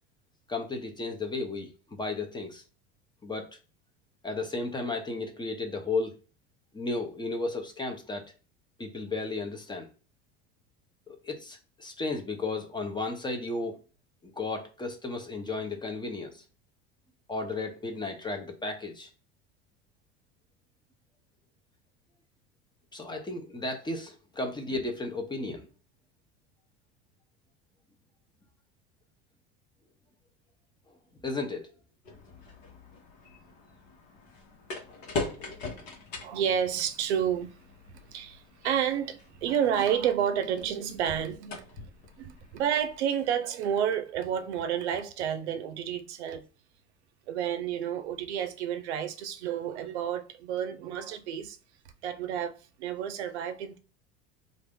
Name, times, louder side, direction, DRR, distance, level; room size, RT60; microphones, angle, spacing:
voice 1, 0.5-2.6 3.2-3.5 4.2-6.1 6.7-8.2 8.8-9.9 11.1-13.8 14.2-16.4 17.3-19.1 22.9-25.7 31.2-31.7, left 3 dB, 15° left, 0.8 m, -34 dB
sound 1, 32.1-43.0, left 3 dB, 65° left, 1.2 m, -42 dB
voice 2, 36.2-37.6 38.1-41.7 42.2-46.4 47.3-51.6 52.0-53.8, right 9 dB, 85° right, 0.6 m, -30 dB
2.6 x 2.5 x 3.6 m
hypercardioid pair, 95°, 33 cm